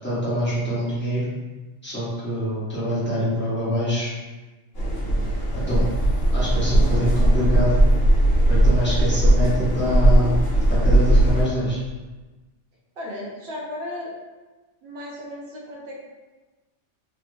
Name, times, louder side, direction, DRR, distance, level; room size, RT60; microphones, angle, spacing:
voice 1, 0.0-1.3 1.8-4.1 5.7-5.9 6.3-7.8 8.5-10.3 10.7-11.8, equal, 10° left, -10 dB, 1.0 m, -25 dB
sound 1, 4.7-11.4, right 1 dB, 55° left, 1.2 m, -18 dB
voice 2, 13.0-14.2 14.8-16.0, left 1 dB, 60° right, -3 dB, 0.9 m, -35 dB
3.3 x 2.8 x 2.6 m, 1.2 s
omnidirectional pair, 1.2 m